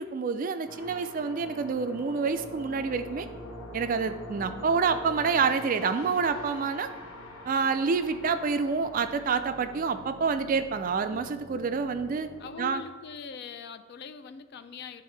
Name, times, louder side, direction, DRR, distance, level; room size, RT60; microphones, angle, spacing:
voice 1, 0.0-3.3 3.7-6.9 7.5-12.3 12.6-12.8, right 5 dB, 40° right, 10 dB, 0.3 m, -28 dB
sound 1, 0.7-12.7, left 1 dB, 85° left, 1.2 m, -44 dB
voice 2, 12.4-15.0, left 5 dB, 50° left, 11 dB, 0.3 m, -42 dB
10.5 x 3.5 x 3.2 m, 1.5 s
head